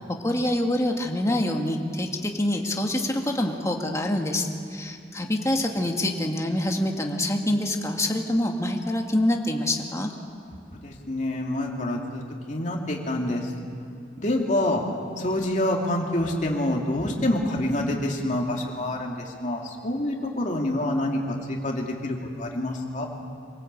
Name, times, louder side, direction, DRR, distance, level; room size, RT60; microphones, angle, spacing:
voice 1, 0.2-10.1, left 1 dB, 15° left, 2 dB, 1.9 m, -26 dB
voice 2, 10.8-13.5 14.2-14.8 15.2-23.1, left 1 dB, 45° left, 0 dB, 2.8 m, -27 dB
25.5 x 17.5 x 8.4 m, 2.4 s
head